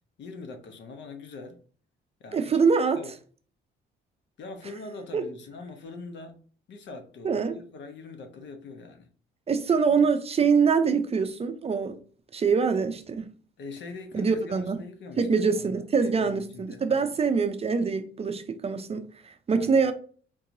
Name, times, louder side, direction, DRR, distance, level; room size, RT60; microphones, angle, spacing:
voice 1, 0.2-1.6 2.2-2.6 2.9-3.1 4.4-6.4 6.7-9.1 13.6-17.1 19.5-19.9, left 3 dB, 65° left, 0.8 m, -43 dB
voice 2, 2.3-3.0 5.1-5.2 7.2-7.6 9.5-12.0 12.3-13.3 14.1-14.8 15.2-19.9, right 5 dB, 30° right, 0.5 m, -24 dB
3.7 x 2.9 x 2.5 m
cardioid pair, 90°, 20 cm